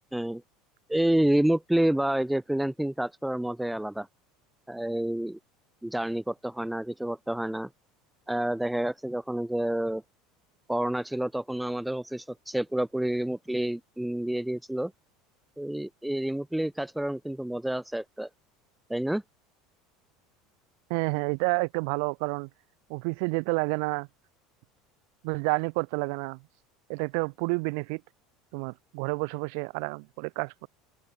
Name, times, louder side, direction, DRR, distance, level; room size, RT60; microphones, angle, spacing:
voice 1, 0.1-0.4 0.9-4.1 4.7-5.4 5.8-7.7 8.3-10.0 10.7-14.9 15.6-18.3 18.9-19.2, right 1 dB, 5° right, 0.9 m, -28 dB
voice 2, 20.9-22.5 22.9-24.1 25.2-26.4 26.9-28.0 28.5-30.7, right 38 dB, 70° right, 3.7 m, -29 dB
open air
supercardioid pair, 135°, 0 cm